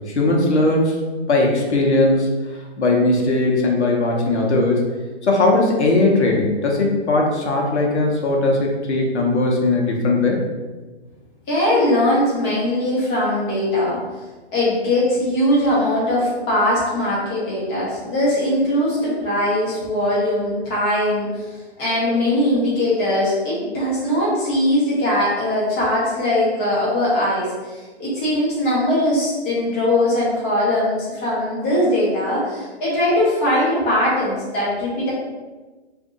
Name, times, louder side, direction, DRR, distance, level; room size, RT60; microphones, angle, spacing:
voice 1, 0.1-1.0 1.3-2.3 2.8-4.9 5.2-10.4, left 2 dB, 75° left, -1 dB, 0.9 m, -18 dB
voice 2, 11.5-14.0 14.5-21.5 21.8-35.1, left 1 dB, 15° left, -7 dB, 0.6 m, -20 dB
2.6 x 2.5 x 3.7 m, 1.3 s
hypercardioid pair, 160°, 34 cm